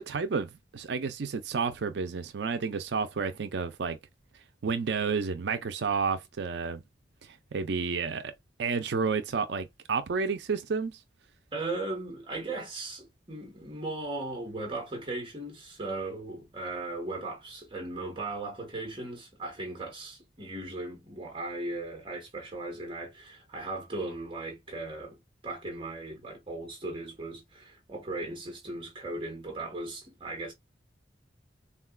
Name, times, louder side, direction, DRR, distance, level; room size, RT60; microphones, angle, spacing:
voice 1, 0.0-4.0 4.6-6.8 7.5-8.3 8.6-11.0, right 5 dB, 70° right, 0.4 m, -30 dB
voice 2, 11.5-30.5, right 2 dB, 30° right, 1.0 m, -37 dB
3.7 x 2.3 x 2.2 m
head